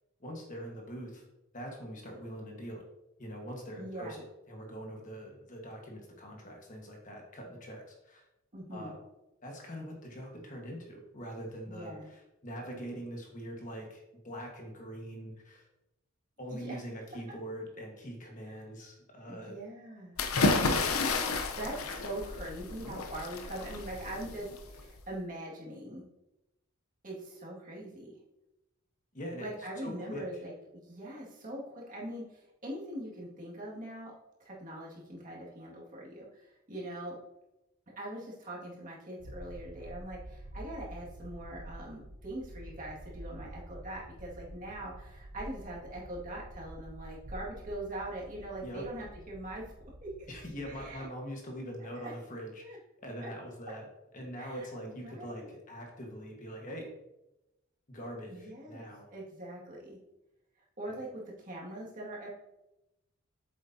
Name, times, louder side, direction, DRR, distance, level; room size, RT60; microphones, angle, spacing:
voice 1, 0.2-1.2 1.5-2.9 3.2-8.2 8.7-9.0 9.4-15.7 16.4-19.6 20.5-21.3 29.1-30.3 48.6-48.9 50.3-53.8 54.1-56.9 57.9-59.1 60.9-61.0, equal, 35° left, 1 dB, 1.4 m, -43 dB
voice 2, 3.8-4.2 8.5-8.9 11.7-12.1 16.5-16.8 18.5-18.6 19.3-20.1 21.5-26.0 27.0-28.2 29.4-34.1 34.4-37.2 38.0-49.7 50.0-50.1 50.7-51.1 52.0-52.1 52.6-52.8 53.2-53.3 54.4-55.5 58.3-58.8 59.1-60.0 60.8-62.3, right 1 dB, 35° right, -4 dB, 2.0 m, -42 dB
sound 1, 20.2-25.0, left 3 dB, 75° left, 0.8 m, -31 dB
sound 2, 39.2-51.0, right 1 dB, 90° right, 1.0 m, -48 dB
8.6 x 7.3 x 2.8 m, 0.94 s
head